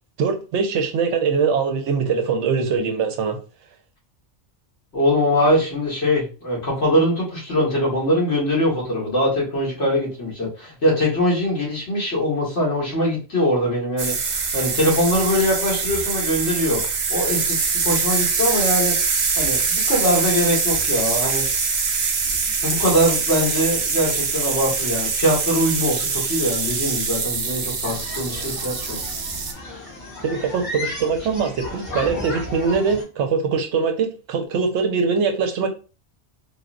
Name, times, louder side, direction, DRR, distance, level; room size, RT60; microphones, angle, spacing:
voice 1, 0.2-3.4 30.2-35.7, right 5 dB, 80° right, 5 dB, 0.9 m, -22 dB
voice 2, 4.9-14.1 14.5-16.8 17.1-19.0 19.4-21.4 22.6-29.0, equal, 75° left, -5 dB, 1.7 m, -22 dB
sound 1, 14.0-29.5, right 5 dB, 55° right, 0.5 m, -23 dB
sound 2, 27.8-33.0, left 2 dB, 55° left, 1.6 m, -34 dB
3.5 x 2.0 x 2.4 m, 0.34 s
omnidirectional pair, 1.2 m